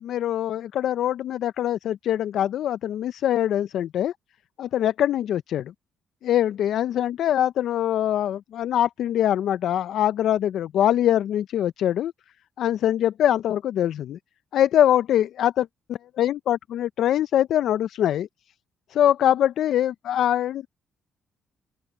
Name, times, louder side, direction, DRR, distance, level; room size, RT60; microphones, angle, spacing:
voice 1, 0.0-4.1 4.6-5.7 6.2-12.1 12.6-14.2 14.5-18.3 18.9-20.7, left 11 dB, 75° left, 0.4 m, -23 dB
open air
cardioid pair, 90°, 0 cm